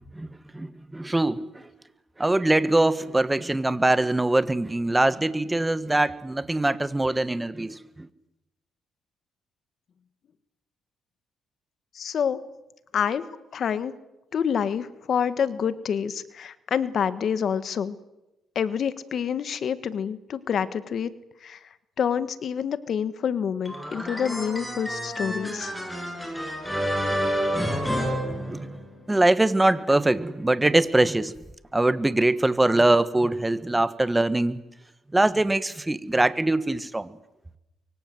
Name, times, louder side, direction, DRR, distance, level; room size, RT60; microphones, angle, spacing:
voice 1, 0.1-1.7 2.2-8.1 28.5-28.8 29.1-31.3 31.7-34.6 35.1-37.1, right 2 dB, 15° right, 1.4 m, -23 dB
voice 2, 11.9-12.4 12.9-13.2 13.5-13.9 14.3-18.0 18.5-21.1 21.4-21.6 22.0-25.7, left 7 dB, 60° left, 1.5 m, -27 dB
sound 1, 23.7-29.0, equal, 5° left, 7.3 m, -29 dB
24.0 x 24.0 x 7.8 m
cardioid pair, 90°, 0 cm